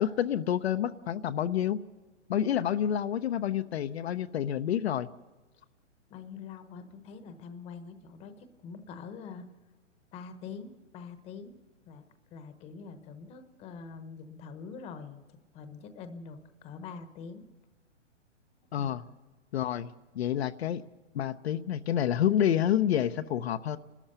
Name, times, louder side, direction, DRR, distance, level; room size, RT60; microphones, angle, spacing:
voice 1, 0.0-1.8 2.3-5.1 18.7-19.0 19.5-20.8 21.1-23.8, left 10 dB, 60° left, 9 dB, 0.7 m, -28 dB
voice 2, 6.1-9.5 10.1-11.6 11.9-12.0 12.3-17.4 18.7-18.9, left 5 dB, 15° left, 9 dB, 1.0 m, -45 dB
29.5 x 13.5 x 6.7 m, 1.2 s
hypercardioid pair, 150°, 37 cm